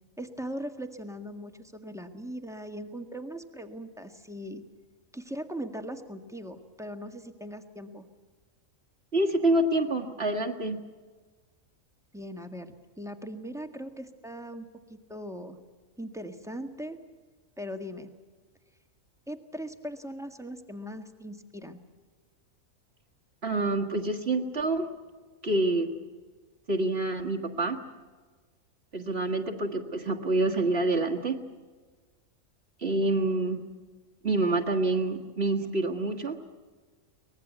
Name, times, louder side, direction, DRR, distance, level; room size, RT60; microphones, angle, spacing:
voice 1, 0.2-4.6 5.1-8.0 12.1-15.6 16.0-17.0 17.6-18.1 19.3-21.8, equal, ahead, 6 dB, 1.7 m, -40 dB
voice 2, 9.1-10.8 23.4-24.9 25.4-25.9 26.7-27.8 28.9-31.4 32.8-33.6 34.2-36.4, right 2 dB, 50° right, 1 dB, 2.0 m, -27 dB
24.0 x 19.5 x 8.3 m, 1.4 s
omnidirectional pair, 1.4 m